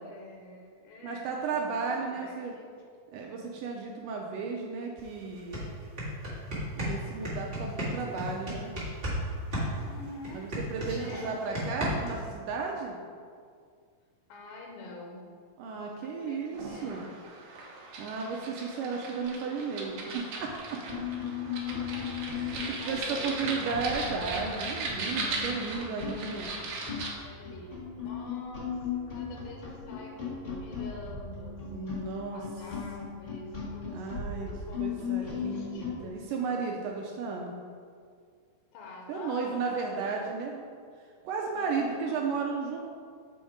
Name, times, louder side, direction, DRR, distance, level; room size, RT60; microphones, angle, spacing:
voice 1, 0.0-2.7 9.7-10.5 11.0-11.9 12.1-12.3 14.3-15.2 15.7-17.1 19.4-19.8 21.4-22.1 22.4-24.6 27.2-31.6 32.3-36.3 38.7-40.4 41.5-42.3, left 2 dB, 90° left, 0 dB, 2.7 m, -47 dB
voice 2, 1.0-2.6 3.1-5.6 6.8-8.7 10.3-13.0 15.6-17.1 18.0-20.8 22.4-26.5 31.7-32.4 33.9-34.5 34.8-37.6 39.1-40.7 41.2-42.8, right 4 dB, 85° right, 0 dB, 1.9 m, -34 dB
sound 1, 5.0-5.1 5.4-9.2 9.5-12.2, equal, 30° right, 1.0 m, -33 dB
sound 2, 16.5-27.1, right 3 dB, 65° right, 2.2 m, -38 dB
sound 3, 20.4-20.5 20.8-36.0, left 6 dB, 45° left, 0.6 m, -37 dB
7.7 x 4.3 x 4.9 m, 2.1 s
omnidirectional pair, 4.3 m